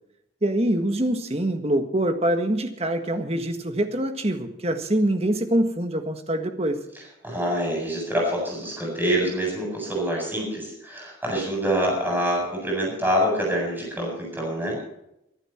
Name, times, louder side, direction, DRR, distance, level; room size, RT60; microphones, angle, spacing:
voice 1, 0.4-6.8, right 1 dB, 30° right, 7 dB, 1.6 m, -24 dB
voice 2, 7.2-14.8, equal, 10° right, -2 dB, 8.0 m, -26 dB
23.0 x 11.5 x 4.4 m, 0.82 s
head